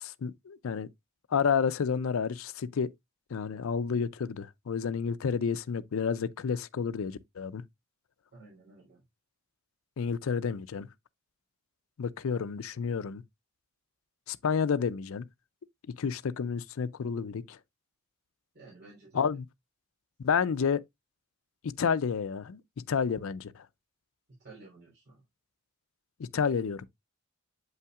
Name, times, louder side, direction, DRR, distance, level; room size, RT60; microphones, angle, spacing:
voice 1, 0.0-0.9 1.3-2.9 3.3-7.6 10.0-10.9 12.0-13.2 14.3-15.2 16.0-17.6 19.1-19.5 20.2-20.8 21.6-22.6 22.9-23.5 26.2-26.9, left 6 dB, 70° left, 0.4 m, -30 dB
voice 2, 8.3-9.0 18.5-19.3 24.4-25.2, right 3 dB, 50° right, 3.2 m, -52 dB
7.9 x 5.6 x 2.3 m
head